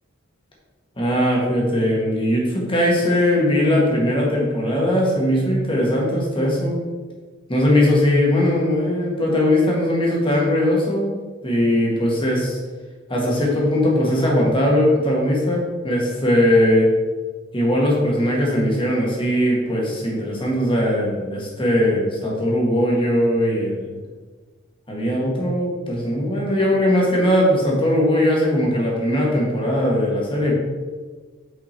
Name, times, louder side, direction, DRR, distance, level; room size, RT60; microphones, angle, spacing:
voice 1, 1.0-6.8 7.5-11.2 11.4-12.6 13.1-16.9 17.5-24.0 24.9-30.5, left 1 dB, 25° left, -3 dB, 1.6 m, -19 dB
5.4 x 5.2 x 4.4 m, 1.4 s
head